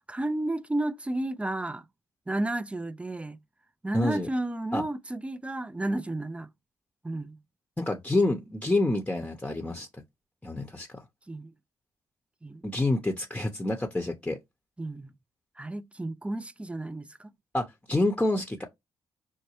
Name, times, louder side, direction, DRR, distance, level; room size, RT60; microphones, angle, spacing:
voice 1, 0.1-1.9 2.3-3.4 3.8-6.5 7.0-7.4 11.3-11.5 12.4-12.6 14.8-15.1 15.6-17.3, right 1 dB, 10° right, 0.4 m, -32 dB
voice 2, 3.9-4.3 4.7-4.8 7.8-9.9 10.4-11.0 12.6-14.4 17.5-18.7, left 2 dB, 15° left, 0.8 m, -27 dB
5.3 x 2.2 x 3.0 m
supercardioid pair, 50°, 9 cm